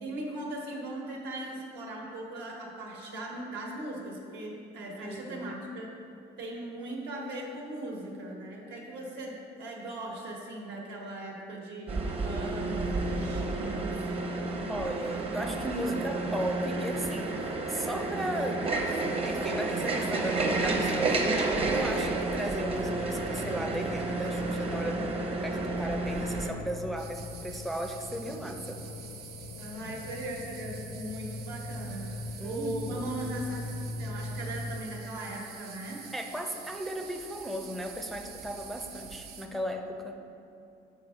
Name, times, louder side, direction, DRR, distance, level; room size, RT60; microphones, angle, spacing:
voice 1, 0.0-5.9 6.4-14.4 29.6-32.1 32.4-36.0, right 1 dB, 85° right, -2 dB, 1.3 m, -39 dB
voice 2, 5.0-5.5 14.7-28.8 32.4-33.1 36.1-40.2, equal, ahead, 2 dB, 0.4 m, -36 dB
sound 1, 11.9-26.5, right 2 dB, 35° right, 0.8 m, -31 dB
sound 2, 22.6-34.8, left 2 dB, 90° left, 0.4 m, -41 dB
sound 3, 27.0-39.5, right 7 dB, 70° right, 0.6 m, -47 dB
7.1 x 4.0 x 5.1 m, 2.7 s
cardioid pair, 110°, 17 cm